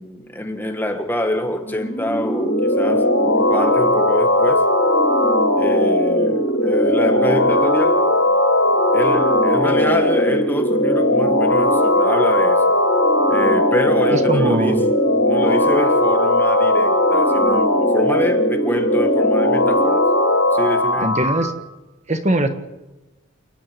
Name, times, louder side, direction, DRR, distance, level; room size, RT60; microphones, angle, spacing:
voice 1, 0.0-4.7 5.5-8.1 8.9-12.7 13.3-14.8 15.3-20.1 20.5-21.1, left 1 dB, 10° left, 1.6 m, -25 dB
sound 1, 1.6-21.5, left 1 dB, 65° left, 5.7 m, -17 dB
voice 2, 14.1-14.8 21.0-21.5 22.1-22.5, right 1 dB, 30° right, 1.5 m, -20 dB
29.0 x 10.0 x 9.0 m
head